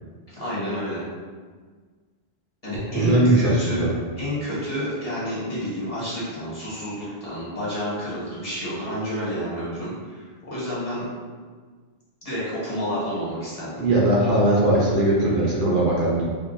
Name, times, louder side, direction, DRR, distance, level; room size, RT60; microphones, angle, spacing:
voice 1, 0.3-1.0 2.6-3.9 4.2-11.1 12.2-14.0, equal, 35° left, -9 dB, 1.1 m, -29 dB
voice 2, 2.9-3.9 13.8-16.2, right 1 dB, 60° right, -5 dB, 0.8 m, -20 dB
3.5 x 2.3 x 2.6 m, 1.5 s
omnidirectional pair, 1.1 m